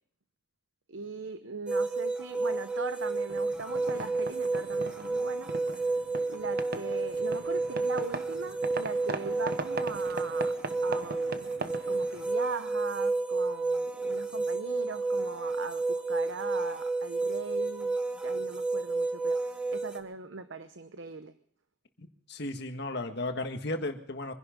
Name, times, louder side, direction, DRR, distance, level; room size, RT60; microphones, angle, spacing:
voice 1, 0.9-10.6 10.8-11.5 11.9-18.0 18.2-21.3, right 4 dB, 85° right, 10 dB, 0.9 m, -40 dB
sound 1, 1.7-20.0, right 3 dB, 5° right, 1.1 m, -31 dB
sound 2, 3.3-12.4, right 3 dB, 55° right, 1.0 m, -40 dB
voice 2, 22.0-24.3, left 2 dB, 60° left, 6 dB, 1.7 m, -35 dB
24.5 x 11.0 x 5.1 m, 0.62 s
head